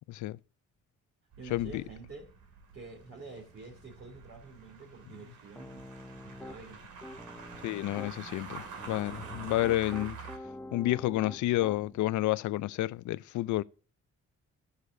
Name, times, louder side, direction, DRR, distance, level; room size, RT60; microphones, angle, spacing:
voice 1, 0.1-0.4 1.5-1.8 7.6-10.2 10.7-13.6, left 16 dB, 75° left, 0.5 m, -30 dB
sound 1, 1.3-10.4, right 5 dB, 85° right, 2.4 m, -47 dB
voice 2, 1.4-2.3 2.7-5.8 6.2-6.8, right 3 dB, 45° right, 2.9 m, -48 dB
Piano, 5.6-6.6 7.0-8.1 8.8-12.0, left 1 dB, 5° left, 0.6 m, -46 dB
12.5 x 6.7 x 2.6 m
cardioid pair, 90°, 30 cm